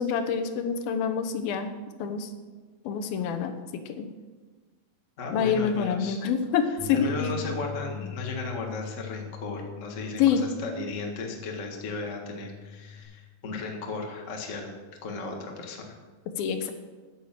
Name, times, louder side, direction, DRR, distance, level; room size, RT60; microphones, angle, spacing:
voice 1, 0.0-1.7 2.0-2.3 2.8-4.1 5.3-7.5 10.2-10.5 16.4-16.7, left 7 dB, 75° left, 7 dB, 2.6 m, -27 dB
voice 2, 5.2-6.2 6.9-14.7 15.0-16.0, left 3 dB, 45° left, 1 dB, 0.9 m, -35 dB
sound 1, 6.8-13.0, left 6 dB, 50° right, 3.0 m, -42 dB
10.0 x 9.1 x 7.5 m, 1.3 s
omnidirectional pair, 4.4 m